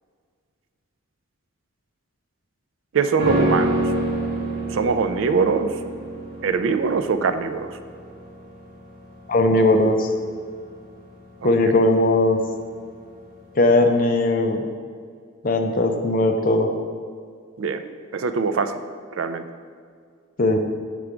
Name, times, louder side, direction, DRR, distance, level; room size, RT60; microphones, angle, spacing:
voice 1, 2.9-4.0 4.7-5.8 6.4-7.8 11.4-11.5 17.6-17.8 18.1-18.8 19.1-19.4, right 5 dB, 70° right, 10 dB, 0.4 m, -23 dB
sound 1, 3.2-12.6 12.9-13.0, right 1 dB, 45° right, 1.6 m, -28 dB
voice 2, 9.3-10.1 11.4-12.4 13.6-14.6 15.4-16.7 20.4-20.6, left 2 dB, 40° left, 5 dB, 0.5 m, -18 dB
7.0 x 4.6 x 5.0 m, 2.1 s
head